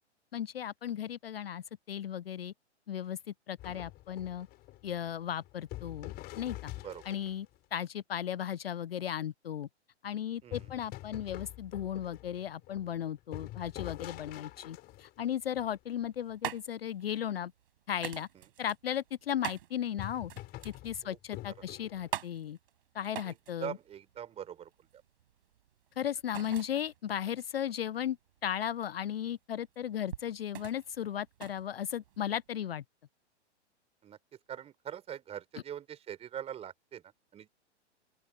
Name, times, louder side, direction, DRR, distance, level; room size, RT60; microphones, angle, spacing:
voice 1, 0.3-2.5 2.9-3.2 3.5-4.5 4.8-6.7 7.1-9.7 10.0-17.5 17.9-18.3 18.6-20.3 20.6-22.6 22.9-23.8 26.0-28.2 28.4-32.8, left 10 dB, 55° left, 0.6 m, -36 dB
sound 1, 3.6-7.6 10.5-16.2 19.9-22.1, left 17 dB, 25° left, 4.8 m, -46 dB
sound 2, 15.9-32.5, right 11 dB, 50° right, 6.0 m, -45 dB
voice 2, 23.6-25.0 34.0-34.2 34.5-37.5, right 9 dB, 15° right, 3.8 m, -43 dB
open air
figure-of-eight pair, 110°, 35 cm